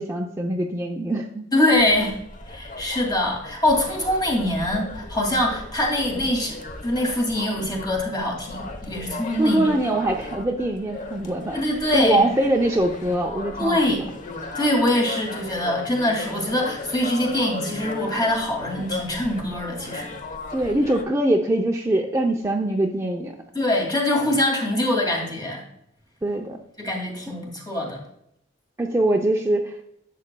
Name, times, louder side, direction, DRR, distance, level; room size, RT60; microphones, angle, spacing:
voice 1, 0.0-1.4 9.4-11.6 11.9-14.0 20.5-23.3 26.2-26.6 27.3-27.4 28.8-29.8, right 1 dB, 15° right, 1 dB, 0.6 m, -23 dB
voice 2, 1.5-2.2 2.5-9.7 11.5-12.2 13.6-14.1 14.5-20.2 23.5-25.6 26.8-28.0, left 1 dB, 25° left, 0 dB, 2.3 m, -23 dB
sound 1, 1.7-21.0, left 2 dB, 45° left, 0.9 m, -36 dB
10.5 x 7.3 x 2.2 m, 0.75 s
head